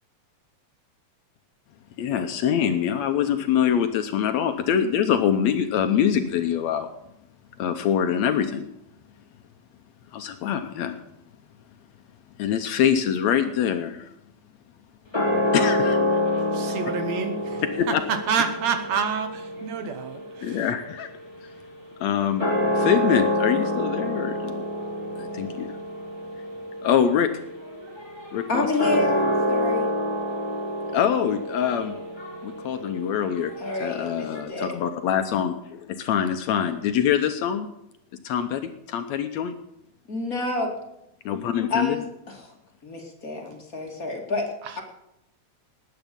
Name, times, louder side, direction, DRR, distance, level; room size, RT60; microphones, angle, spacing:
voice 1, 2.0-6.9 7.6-8.7 10.1-11.0 12.4-14.1 15.5-16.2 17.8-18.0 20.4-21.1 22.0-22.5 22.8-24.6 25.2-25.7 26.8-27.3 28.3-28.7 30.9-32.0 32.4-33.5 33.8-37.7 38.2-39.5 41.3-42.0, left 8 dB, 70° left, 8 dB, 1.9 m, -24 dB
sound 1, 15.1-21.8 22.3-34.4, left 1 dB, 10° left, 3.3 m, -28 dB
voice 2, 16.5-20.7 44.6-44.8, right 7 dB, 70° right, 9 dB, 2.1 m, -28 dB
voice 3, 28.5-29.9 33.6-34.7 40.1-40.7 41.7-42.3 42.8-44.5, left 2 dB, 30° left, 1 dB, 2.4 m, -28 dB
19.5 x 9.3 x 5.2 m, 0.82 s
omnidirectional pair, 3.5 m